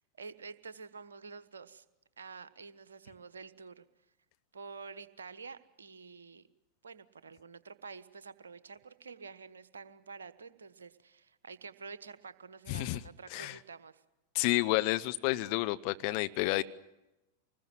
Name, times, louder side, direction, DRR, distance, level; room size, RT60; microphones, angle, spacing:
voice 1, 0.0-1.8 2.2-3.8 4.5-6.5 6.8-14.0, right 5 dB, 70° right, 12 dB, 1.2 m, -49 dB
voice 2, 12.7-13.0 13.3-13.6 14.3-16.6, left 18 dB, 45° left, 10 dB, 1.0 m, -30 dB
25.5 x 20.5 x 7.6 m, 0.93 s
figure-of-eight pair, 90°, 0 cm